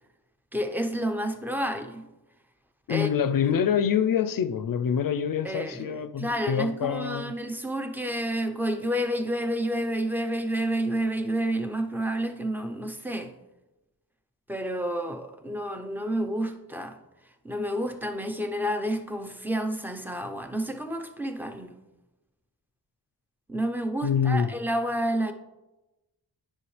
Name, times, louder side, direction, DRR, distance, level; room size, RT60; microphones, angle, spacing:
voice 1, 0.5-2.0 2.9-3.1 5.4-13.3 14.5-17.0 17.4-21.8 23.5-25.3, right 1 dB, 5° right, 0.7 m, -30 dB
voice 2, 2.9-7.3 24.0-24.5, left 8 dB, 55° left, 0.5 m, -26 dB
9.8 x 5.7 x 3.2 m
cardioid pair, 85°, 41 cm